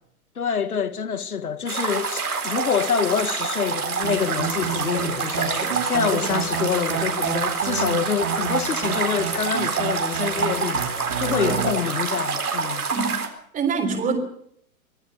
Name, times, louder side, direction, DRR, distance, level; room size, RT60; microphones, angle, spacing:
voice 1, 0.4-10.9 11.2-12.8, left 7 dB, 85° left, 1.8 m, -26 dB
sound 1, 1.7-13.3, right 5 dB, 85° right, 4.2 m, -27 dB
sound 2, 4.0-11.7, right 10 dB, 45° right, 4.2 m, -31 dB
voice 2, 12.9-13.3 13.5-14.2, right 5 dB, 20° right, 3.6 m, -25 dB
24.5 x 15.5 x 7.1 m
hypercardioid pair, 120°, 44 cm